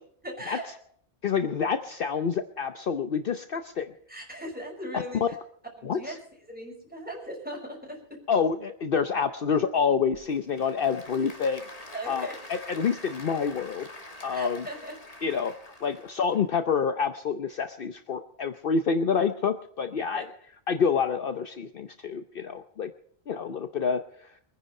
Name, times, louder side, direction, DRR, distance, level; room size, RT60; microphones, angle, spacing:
voice 1, 0.2-0.8 4.1-5.4 5.8-6.2 6.5-8.2 11.9-12.4 14.3-15.0 20.1-20.2, right 1 dB, 10° right, 0 dB, 5.8 m, -38 dB
voice 2, 1.2-3.9 4.9-5.3 5.8-6.1 8.3-11.6 12.1-14.6 15.2-15.5 15.8-20.3 20.7-22.9 23.3-24.0, left 6 dB, 60° left, 9 dB, 0.9 m, -27 dB
Applause / Crowd, 9.9-16.4, left 2 dB, 35° left, 1.9 m, -45 dB
23.5 x 10.0 x 5.4 m, 0.64 s
omnidirectional pair, 1.1 m